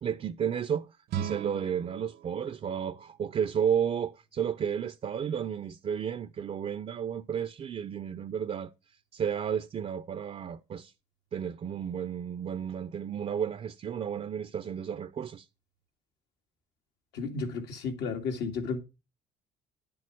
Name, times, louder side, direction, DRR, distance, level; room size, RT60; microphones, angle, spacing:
voice 1, 0.0-0.9 1.2-8.7 9.1-10.9 11.3-15.5, right 8 dB, 40° right, 0.5 m, -32 dB
sound 1, 1.1-4.1, right 9 dB, 75° right, 0.9 m, -40 dB
voice 2, 17.1-18.8, left 4 dB, 80° left, 2.3 m, -33 dB
10.5 x 7.0 x 4.8 m
cardioid pair, 110°, 17 cm